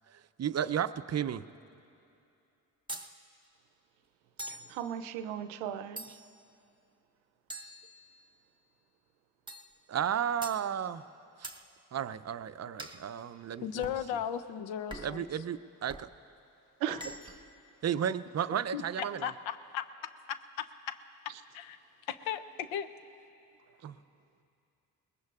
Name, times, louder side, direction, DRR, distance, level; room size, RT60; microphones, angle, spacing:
voice 1, 0.4-1.4 9.9-11.0 11.4-11.5 11.9-13.9 15.0-16.1 17.8-19.3 23.8-24.0, right 9 dB, 35° right, 14 dB, 0.5 m, -33 dB
sound 1, 2.9-3.1 4.4-4.7 6.0-6.4 7.5-8.4 9.5-9.7 10.4-10.6 11.4-11.6 12.8-13.0 13.8-14.0 14.9-15.2 15.9-16.1 16.9-17.5, right 2 dB, 10° right, 1.2 m, -44 dB
voice 2, 4.5-6.0 16.8-17.1, right 10 dB, 85° right, 10 dB, 0.6 m, -37 dB
voice 3, 13.6-15.2 18.7-18.8 19.2-19.8 20.3-21.0 21.5-21.8 22.1-22.9, left 9 dB, 80° left, 12 dB, 0.7 m, -36 dB
22.5 x 19.0 x 2.4 m, 2.7 s
hypercardioid pair, 45°, 45 cm